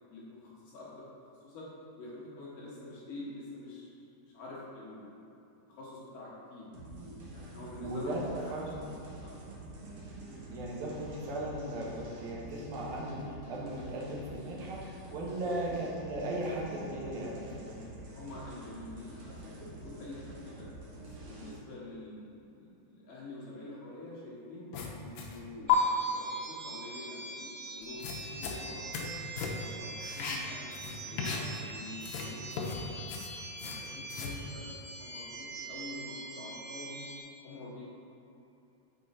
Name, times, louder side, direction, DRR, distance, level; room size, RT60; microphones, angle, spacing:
voice 1, 0.1-1.0 1.4-1.7 2.0-5.1 5.7-6.7 7.3-8.9 9.2-9.4 15.3-15.6 18.1-24.7 25.0-29.1 29.4-31.4 31.7-33.2 33.6-37.1 37.4-37.8, left 2 dB, 65° left, -7 dB, 2.5 m, -47 dB
sound 1, 6.7-21.5, right 2 dB, 85° right, 1.3 m, -47 dB
voice 2, 7.8-8.2 8.5-8.8 10.5-17.9, right 1 dB, 65° right, -3 dB, 2.0 m, -37 dB
sound 2, 24.7-25.4 25.7-25.8 27.8-29.1 29.4-29.7 30.0-31.7 32.0-34.4, left 8 dB, 80° left, 2.1 m, -34 dB
sound 3, 25.7-37.2, right 2 dB, 50° right, 1.4 m, -44 dB
7.6 x 4.5 x 4.2 m, 2.9 s
omnidirectional pair, 4.7 m